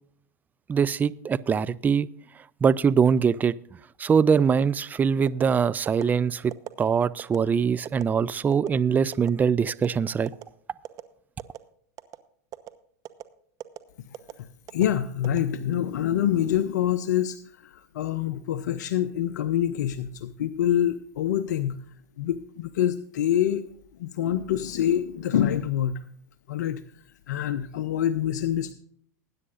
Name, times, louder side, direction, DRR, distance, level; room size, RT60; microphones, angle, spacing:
voice 1, 0.7-2.1 2.6-3.5 4.0-6.5 6.8-10.3, right 6 dB, 20° right, 0.4 m, -22 dB
sound 1, 5.3-5.5 5.9-6.0 6.5-6.7 7.2-7.4 7.8-8.0 8.5-8.7 9.1-9.3 9.7-9.9 10.3-10.4 10.8-11.0 11.4-11.6 12.0-12.2 12.5-12.7 13.0-13.2 13.6-13.8 14.1-14.3 14.7-14.8 15.2-15.9 16.3-16.6, right 13 dB, 40° right, 0.9 m, -38 dB
voice 2, 14.7-21.8 22.2-23.7 24.0-26.0 26.5-26.8 27.3-28.7, left 10 dB, 75° left, 0.7 m, -26 dB
20.0 x 9.7 x 2.5 m
hypercardioid pair, 105°, 9 cm